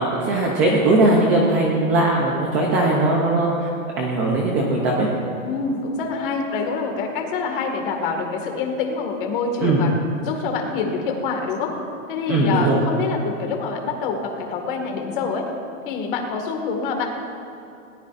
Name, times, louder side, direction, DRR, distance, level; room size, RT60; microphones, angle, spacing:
voice 1, 0.0-3.7 4.0-5.1 9.6-9.8 12.3-12.8, right 2 dB, 15° right, -2 dB, 0.5 m, -19 dB
voice 2, 5.4-9.9 10.2-11.7 12.1-15.5 15.9-17.2, left 4 dB, 40° left, 3 dB, 1.9 m, -26 dB
20.5 x 18.0 x 2.5 m, 2.6 s
supercardioid pair, 175°, 42 cm